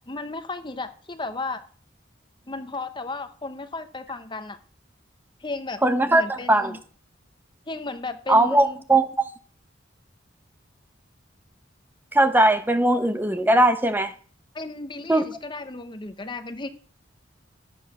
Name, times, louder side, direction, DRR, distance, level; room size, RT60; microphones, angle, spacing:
voice 1, 0.1-1.7 2.5-4.6 5.4-5.8 6.1-6.8 7.7-8.8 14.5-16.7, left 3 dB, 25° left, 0.9 m, -34 dB
voice 2, 5.8-6.7 8.3-9.3 12.1-14.1 15.1-15.2, right 1 dB, 10° right, 0.7 m, -19 dB
12.5 x 7.9 x 6.1 m
head